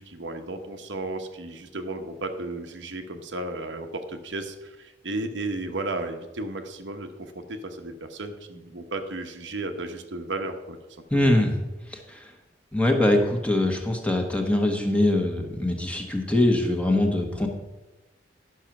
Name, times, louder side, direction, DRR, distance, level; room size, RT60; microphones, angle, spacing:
voice 1, 0.0-10.8 11.1-11.3, right 2 dB, 80° right, 5 dB, 1.1 m, -34 dB
voice 2, 11.1-11.5 11.9-12.0 12.7-17.5, left 1 dB, 5° left, 2 dB, 1.2 m, -22 dB
11.0 x 6.4 x 6.0 m, 1.1 s
head